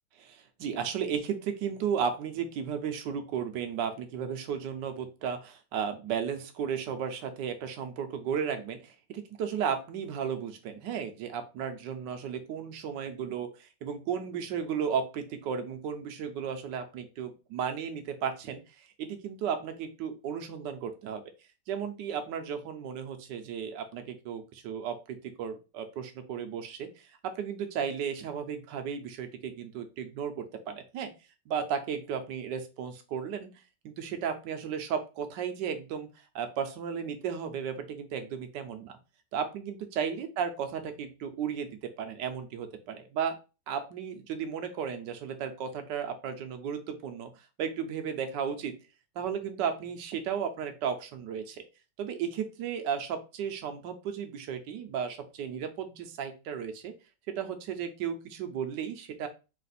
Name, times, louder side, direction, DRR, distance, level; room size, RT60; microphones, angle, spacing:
voice 1, 0.2-21.2 21.7-31.1 31.5-33.5 33.8-36.1 36.3-39.0 39.3-43.4 43.7-47.3 47.6-48.7 49.1-51.6 52.0-56.9 57.3-59.3, right 7 dB, 80° right, 7 dB, 1.3 m, -34 dB
4.2 x 2.5 x 4.0 m, 0.30 s
omnidirectional pair, 1.9 m